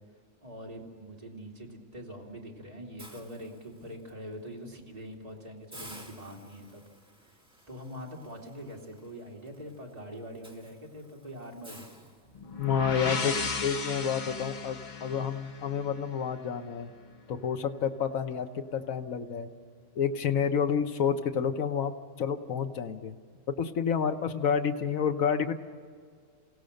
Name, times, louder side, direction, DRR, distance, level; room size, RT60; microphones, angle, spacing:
voice 1, 0.4-6.8 7.2-7.4 7.7-11.9, equal, 30° right, -1 dB, 2.8 m, -44 dB
Hiss, 3.0-4.1 4.6-4.8 5.1-5.2 5.7-12.8, right 1 dB, 5° right, 2.3 m, -53 dB
sound 1, 12.3-16.2, left 4 dB, 40° left, 1.0 m, -35 dB
voice 2, 12.6-16.9 17.3-19.5 20.0-23.2 23.6-25.5, left 7 dB, 80° left, 7 dB, 1.4 m, -29 dB
29.0 x 16.5 x 6.6 m, 2.1 s
omnidirectional pair, 1.4 m